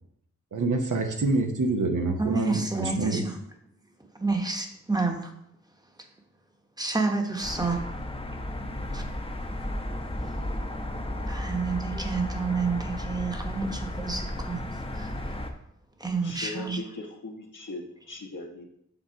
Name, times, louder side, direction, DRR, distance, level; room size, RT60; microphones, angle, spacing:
voice 1, 0.5-3.3, right 3 dB, 80° right, 4 dB, 1.0 m, -26 dB
voice 2, 2.2-3.4 4.2-5.3 6.8-7.8 8.9-9.0 11.3-14.6 14.9-15.4 16.0-16.8, right 3 dB, 15° right, 3 dB, 1.0 m, -29 dB
sound 1, 7.4-15.5, left 1 dB, 20° left, 0.7 m, -34 dB
voice 3, 16.2-17.8 18.1-18.6, left 2 dB, 80° left, 1 dB, 1.2 m, -39 dB
7.2 x 3.8 x 5.6 m, 0.74 s
wide cardioid pair, 100°, 31 cm